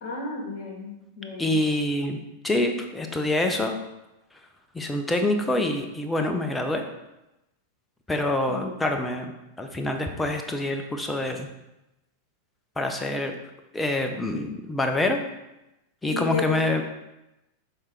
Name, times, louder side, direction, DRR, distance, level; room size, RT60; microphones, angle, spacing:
voice 1, 0.0-1.6 8.5-8.8 16.1-16.6, left 4 dB, 45° left, 0 dB, 1.7 m, -33 dB
voice 2, 1.4-3.8 4.7-6.9 8.1-9.3 9.6-11.5 12.8-13.4 13.7-15.2 16.0-16.8, left 2 dB, 10° left, 5 dB, 0.8 m, -26 dB
6.5 x 3.7 x 4.5 m, 0.95 s
figure-of-eight pair, 90°, 0 cm